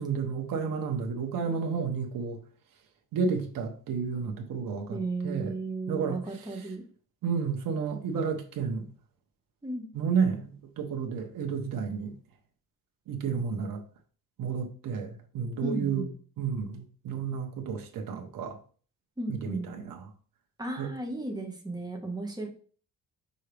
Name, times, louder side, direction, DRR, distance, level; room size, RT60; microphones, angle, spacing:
voice 1, 0.0-2.4 3.1-5.5 5.9-6.2 7.2-8.8 9.9-12.1 13.1-13.8 14.4-16.1 16.4-18.6 19.3-20.0 20.8-20.9, right 6 dB, 70° right, 1.2 m, -31 dB
voice 2, 4.9-6.8 9.6-9.9 15.6-16.1 19.2-19.7 20.6-22.5, right 2 dB, 10° right, 1.5 m, -34 dB
5.7 x 5.4 x 3.4 m
cardioid pair, 135°, 34 cm